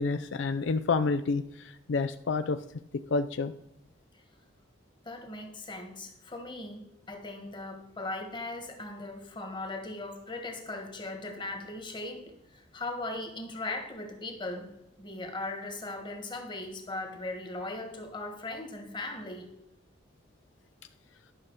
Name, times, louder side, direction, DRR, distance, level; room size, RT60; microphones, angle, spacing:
voice 1, 0.0-2.6 3.1-3.5, left 4 dB, 70° left, 10 dB, 0.4 m, -29 dB
voice 2, 5.0-14.7 15.0-19.5, left 2 dB, 25° left, 4 dB, 1.6 m, -39 dB
11.0 x 6.1 x 4.7 m, 0.86 s
head